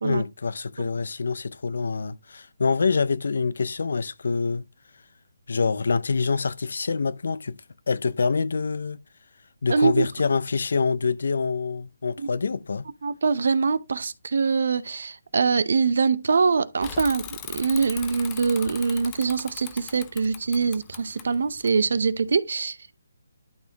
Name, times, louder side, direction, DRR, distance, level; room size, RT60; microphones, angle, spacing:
voice 1, 0.0-4.6 5.5-7.6 7.9-9.0 9.6-12.9, left 4 dB, 65° left, 0.5 m, -26 dB
voice 2, 9.7-10.1 13.0-22.9, right 5 dB, 65° right, 0.7 m, -24 dB
Bicycle / Mechanisms, 16.8-22.3, left 10 dB, 15° left, 0.7 m, -40 dB
12.0 x 4.2 x 2.9 m
hypercardioid pair, 165°, 0 cm